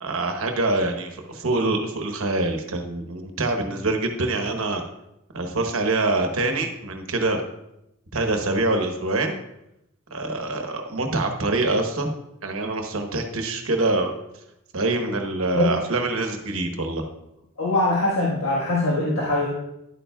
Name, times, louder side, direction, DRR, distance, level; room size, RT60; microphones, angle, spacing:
voice 1, 0.0-4.8 5.3-7.4 8.1-9.3 10.1-12.1 12.4-14.1 14.7-17.1, right 2 dB, 80° right, 5 dB, 1.1 m, -25 dB
voice 2, 17.6-19.5, left 2 dB, 85° left, -4 dB, 1.4 m, -22 dB
11.0 x 8.9 x 2.3 m, 0.86 s
head